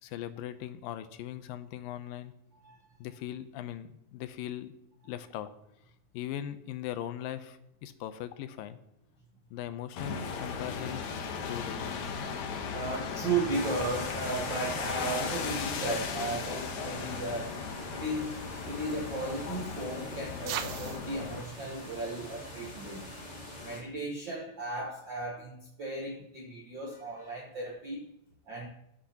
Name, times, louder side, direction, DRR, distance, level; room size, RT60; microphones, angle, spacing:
voice 1, 0.0-2.3 3.0-4.7 5.0-5.5 6.1-8.8 9.5-11.2 11.5-12.2, left 11 dB, 90° left, 11 dB, 2.4 m, -40 dB
sound 1, 10.0-21.4, left 5 dB, 65° left, 2.2 m, -37 dB
voice 2, 12.7-17.6 17.9-18.4 18.7-23.0 23.6-28.1 28.5-28.7, right 2 dB, 65° right, -2 dB, 1.1 m, -35 dB
sound 2, 13.5-23.8, left 1 dB, 35° left, 1.2 m, -43 dB
sound 3, 18.1-23.2, right 9 dB, 80° right, 2.4 m, -45 dB
19.0 x 7.8 x 2.9 m, 0.82 s
omnidirectional pair, 4.0 m